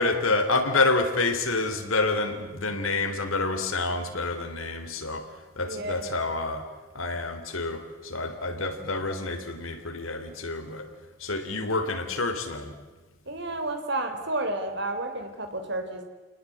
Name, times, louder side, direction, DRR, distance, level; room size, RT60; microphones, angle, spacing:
voice 1, 0.0-6.7 6.9-10.9 11.2-12.7, left 3 dB, 80° left, 7 dB, 3.4 m, -28 dB
voice 2, 5.7-6.1 13.3-16.0, right 2 dB, 55° right, 7 dB, 3.7 m, -31 dB
29.5 x 19.5 x 8.6 m, 1.3 s
head